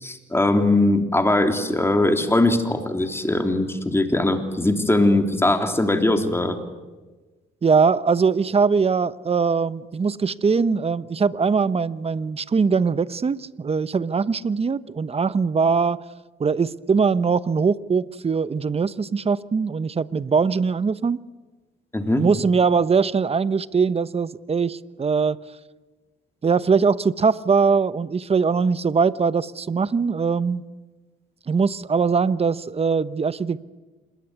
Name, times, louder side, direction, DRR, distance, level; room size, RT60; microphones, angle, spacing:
voice 1, 0.0-6.6 21.9-22.3, left 2 dB, 10° left, 5 dB, 3.4 m, -20 dB
voice 2, 7.6-16.0 16.4-21.2 22.2-25.4 26.4-30.6 31.5-33.6, right 5 dB, 30° right, 16 dB, 0.9 m, -21 dB
26.5 x 21.0 x 9.7 m, 1.2 s
cardioid pair, 90°, 20 cm